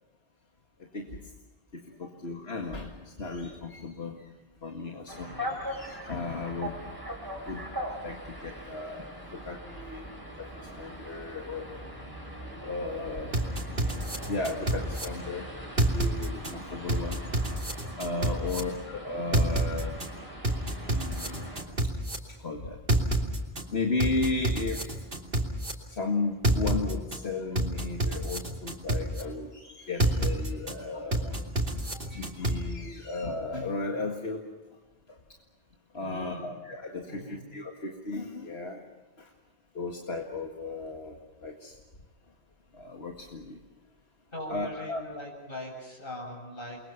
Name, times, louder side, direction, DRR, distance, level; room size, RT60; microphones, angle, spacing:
voice 1, 1.7-4.2 4.6-6.8 7.5-7.6 8.0-10.1 10.4-12.3 12.6-13.4 14.3-15.5 15.8-17.2 18.0-20.0 20.9-21.6 22.4-22.8 23.7-25.1 25.9-31.5 31.8-34.4 35.1-35.2 35.9-38.8 39.2-39.3 39.7-41.8 42.7-43.6 44.5-45.0, left 3 dB, 85° left, 1 dB, 2.2 m, -35 dB
sound 1, 5.1-21.6, equal, 20° right, 5.1 m, -41 dB
voice 2, 5.2-5.6 18.4-18.8 31.9-32.0 36.0-36.5 37.0-37.4 44.3-46.8, equal, 60° left, 1 dB, 7.7 m, -41 dB
sound 2, 13.3-15.0 15.8-16.5 16.9-18.6 19.3-20.1 20.4-22.2 22.9-23.6 24.0-25.7 26.4-27.2 27.6-29.2 30.0-30.7 31.1-32.6, right 1 dB, 60° right, 3.1 m, -27 dB
29.5 x 22.5 x 5.9 m, 1.2 s
omnidirectional pair, 1.0 m